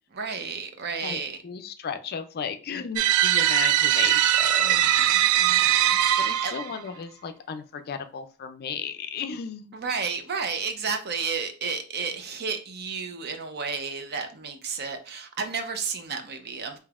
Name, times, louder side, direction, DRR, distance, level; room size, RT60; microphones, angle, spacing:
voice 1, 0.1-1.4 4.6-6.5 9.7-16.8, right 5 dB, 50° right, 0.6 m, -32 dB
voice 2, 1.0-4.8 6.2-9.7, left 6 dB, 45° left, 0.4 m, -34 dB
sound 1, 3.0-6.7, right 12 dB, 85° right, 0.3 m, -21 dB
5.2 x 2.8 x 2.4 m
head